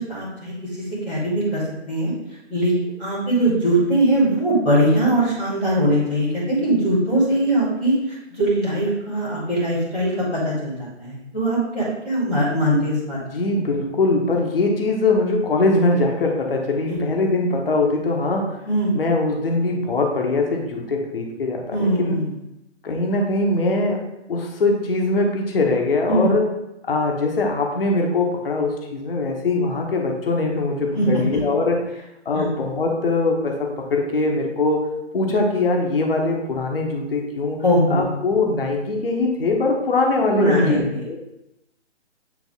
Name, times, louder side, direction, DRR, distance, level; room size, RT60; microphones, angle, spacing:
voice 1, 0.1-0.5 1.0-1.6 1.9-2.1 2.5-2.7 3.0-7.9 8.3-13.2 16.9-17.0 18.7-19.0 21.7-22.3 26.1-26.3 30.9-31.2 32.3-32.5 37.6-38.0 40.4-41.2, right 1 dB, 5° left, -17 dB, 0.5 m, -21 dB
voice 2, 13.1-18.6 18.9-22.1 22.8-24.0 24.3-26.5 26.9-31.8 32.2-34.9 35.1-37.6 37.9-41.2, left 3 dB, 50° left, 1 dB, 1.1 m, -22 dB
8.4 x 3.3 x 3.5 m, 0.89 s
figure-of-eight pair, 140°, 35 cm